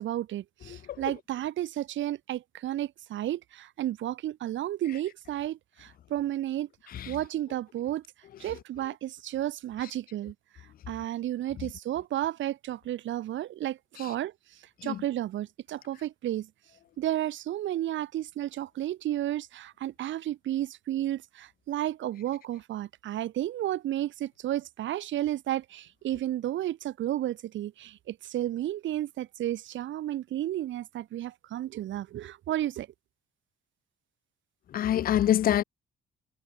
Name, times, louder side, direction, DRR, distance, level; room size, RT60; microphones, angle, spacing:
voice 1, 0.0-6.7 7.1-8.0 8.4-16.5 17.0-32.9, right 13 dB, 75° right, 1.2 m, -32 dB
voice 2, 34.7-35.6, left 11 dB, 50° left, 0.4 m, -25 dB
cardioid pair, 90°, 20 cm